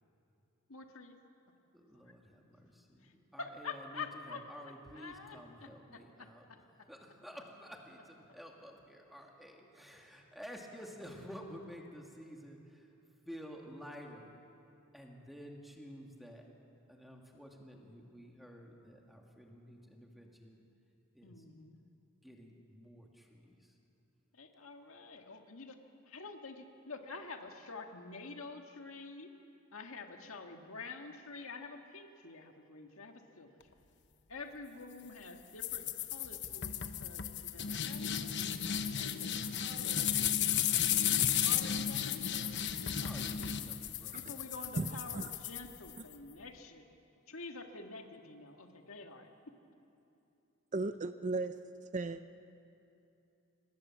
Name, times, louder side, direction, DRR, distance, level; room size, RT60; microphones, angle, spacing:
voice 1, 0.7-1.2 3.0-3.1 3.4-4.4 4.9-5.4 5.9-6.0 21.2-21.8 24.3-25.8 26.1-29.3 29.7-33.5 34.3-38.5 39.0-39.3 39.6-40.3 40.8-40.9 41.4-42.0 42.3-42.7 44.1-46.8 47.3-49.3, left 4 dB, 70° left, 4 dB, 1.9 m, -48 dB
voice 2, 1.7-6.5 6.9-12.9 13.2-14.3 14.9-16.5 16.9-20.6 21.1-21.4 22.2-23.8 43.0-44.9, equal, ahead, 0 dB, 2.4 m, -51 dB
sound 1, 35.6-46.1, left 9 dB, 55° left, 1.0 m, -34 dB
voice 3, 44.8-45.3 50.7-52.3, right 3 dB, 35° right, 11 dB, 0.6 m, -36 dB
26.0 x 20.0 x 7.5 m, 2.8 s
head